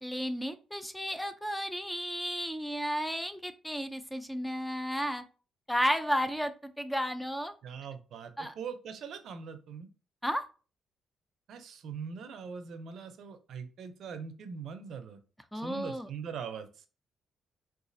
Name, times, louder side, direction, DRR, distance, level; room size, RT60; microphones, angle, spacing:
voice 1, 0.0-5.2 5.7-7.5 8.4-8.5 10.2-10.4 15.5-16.1, equal, 5° left, 9 dB, 0.4 m, -33 dB
voice 2, 7.6-9.9 11.5-15.2 15.5-16.7, right 6 dB, 70° right, 9 dB, 0.5 m, -42 dB
3.9 x 2.4 x 2.5 m, 0.36 s
cardioid pair, 90°, 0 cm